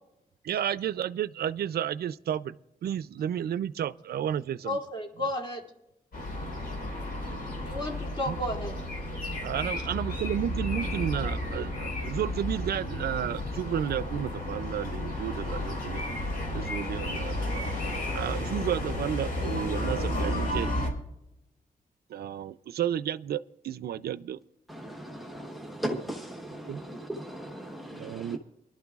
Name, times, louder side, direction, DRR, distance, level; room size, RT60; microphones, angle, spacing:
voice 1, 0.4-2.5 2.8-4.8 8.3-8.4 9.4-16.0 16.5-17.7 18.1-20.7 22.1-24.4 26.7-26.8 27.9-28.4, right 10 dB, 80° right, 15 dB, 0.4 m, -32 dB
voice 2, 4.7-5.6 7.6-8.7, left 1 dB, 30° left, 1 dB, 2.6 m, -32 dB
sound 1, 6.1-20.9, left 1 dB, 70° left, 4.3 m, -32 dB
voice 3, 24.7-28.4, right 1 dB, ahead, 3 dB, 1.0 m, -37 dB
24.5 x 11.5 x 2.4 m, 0.85 s
wide cardioid pair, 110°, 16 cm